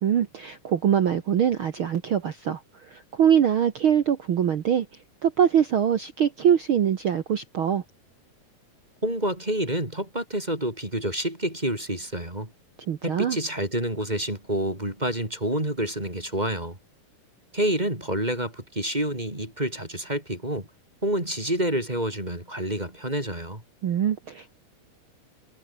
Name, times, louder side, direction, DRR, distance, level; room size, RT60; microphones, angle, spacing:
voice 1, 0.0-4.9 5.2-7.8 12.9-13.4 23.8-24.5, right 9 dB, 55° right, 1.5 m, -23 dB
voice 2, 9.0-12.5 13.0-16.8 17.5-20.7 21.0-23.6, right 1 dB, 10° right, 3.8 m, -28 dB
omnidirectional pair, 3.8 m